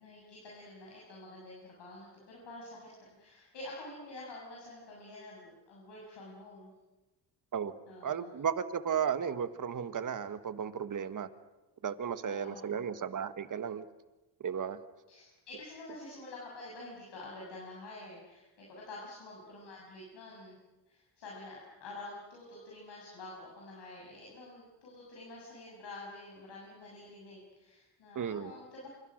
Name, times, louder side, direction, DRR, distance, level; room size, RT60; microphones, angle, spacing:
voice 1, 0.0-6.7 7.9-8.3 12.2-12.8 15.1-20.6 20.9-28.9, left 2 dB, 65° left, -4 dB, 7.4 m, -48 dB
voice 2, 8.0-11.3 11.8-13.9 14.4-14.8 28.1-28.5, right 7 dB, 45° right, 12 dB, 1.5 m, -34 dB
28.0 x 27.0 x 6.4 m, 1.1 s
cardioid pair, 115°, 45 cm